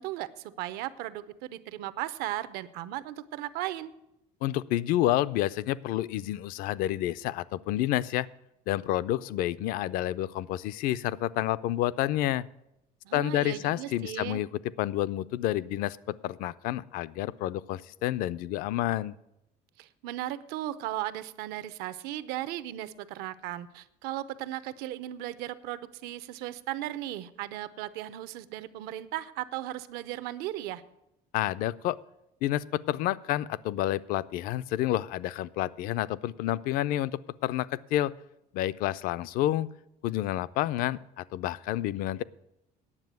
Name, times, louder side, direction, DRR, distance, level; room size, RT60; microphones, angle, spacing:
voice 1, 0.0-3.9 13.0-14.4 19.8-30.8, right 14 dB, 75° right, 15 dB, 0.7 m, -36 dB
voice 2, 4.4-8.3 8.7-12.5 13.1-14.5 14.8-19.1 31.3-32.0 32.4-38.1 38.5-39.7 40.0-42.2, left 14 dB, 60° left, 19 dB, 0.4 m, -29 dB
9.8 x 7.5 x 9.2 m, 0.86 s
cardioid pair, 175°, 16 cm